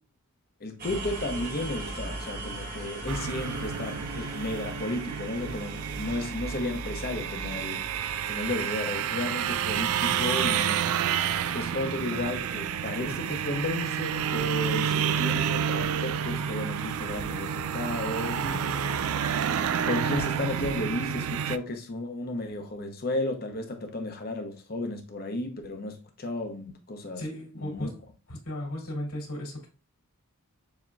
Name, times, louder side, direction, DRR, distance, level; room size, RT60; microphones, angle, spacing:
voice 1, 0.6-7.9 8.3-10.8 11.5-18.7 19.9-27.2 27.5-27.9, left 2 dB, 45° left, 0.8 m, -33 dB
sound 1, 0.8-10.6, right 2 dB, 40° right, 1.1 m, -39 dB
sound 2, 3.1-21.6, right 8 dB, 65° right, 0.3 m, -29 dB
voice 2, 27.2-28.0 28.3-29.7, left 1 dB, 80° left, 2.5 m, -35 dB
7.1 x 2.8 x 2.3 m
head